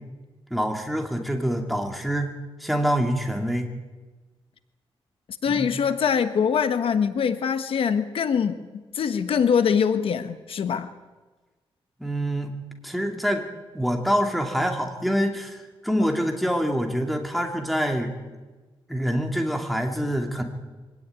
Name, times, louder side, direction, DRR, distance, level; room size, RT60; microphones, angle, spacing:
voice 1, 0.5-2.3 2.6-3.7 5.5-5.7 12.0-12.5 12.8-13.5 13.7-18.1 18.9-20.4, equal, ahead, 3 dB, 2.6 m, -25 dB
voice 2, 5.4-8.6 8.9-10.9 16.0-16.1, left 7 dB, 70° left, 10 dB, 1.3 m, -23 dB
24.0 x 17.0 x 9.7 m, 1.3 s
wide cardioid pair, 140°, 10 cm